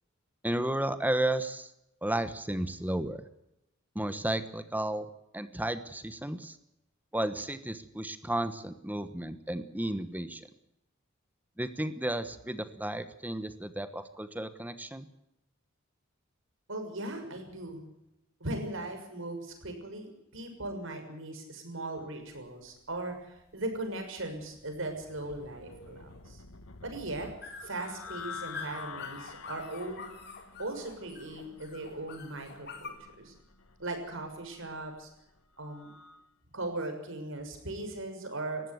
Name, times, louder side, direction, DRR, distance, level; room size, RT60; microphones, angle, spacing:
voice 1, 0.4-1.7 2.0-3.2 3.9-5.1 5.3-6.6 7.1-10.5 11.6-15.1, right 1 dB, 10° right, 11 dB, 1.1 m, -33 dB
voice 2, 16.7-17.8 18.4-26.4 26.8-27.3 27.6-30.0 30.6-33.3 33.8-35.1 35.6-35.9 36.5-38.6, right 2 dB, 65° right, 5 dB, 6.4 m, -38 dB
sound 1, 22.2-32.9, left 5 dB, 55° left, 3.9 m, -48 dB
sound 2, 24.4-36.3, left 6 dB, 90° left, 1.6 m, -49 dB
20.0 x 15.5 x 9.4 m, 0.86 s
head